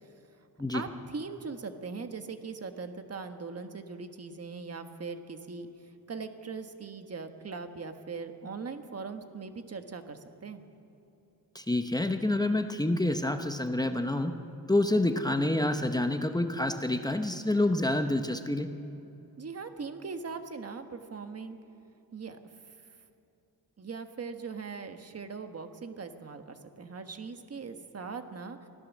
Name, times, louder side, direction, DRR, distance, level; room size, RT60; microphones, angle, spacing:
voice 1, 0.7-5.7 6.1-10.6 19.4-21.6 22.1-22.4 23.8-28.6, right 5 dB, 40° right, 7 dB, 1.4 m, -40 dB
voice 2, 11.5-14.3 14.7-18.7, left 1 dB, 10° left, 7 dB, 0.8 m, -28 dB
25.0 x 16.5 x 7.3 m, 2.9 s
wide cardioid pair, 175°, 37 cm